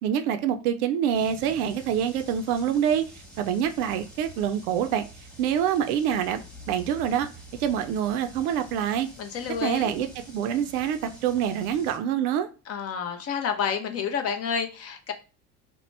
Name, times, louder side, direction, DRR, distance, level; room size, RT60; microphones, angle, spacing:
voice 1, 0.0-3.1 3.4-5.0 5.4-7.3 7.6-9.1 9.6-12.5, right 9 dB, 65° right, 9 dB, 0.5 m, -26 dB
sound 1, 1.1-12.0, equal, ahead, 0.9 m, -47 dB
voice 2, 9.2-10.0 12.7-15.1, left 7 dB, 30° left, 6 dB, 0.5 m, -29 dB
2.9 x 2.1 x 3.2 m, 0.33 s
hypercardioid pair, 70°, 48 cm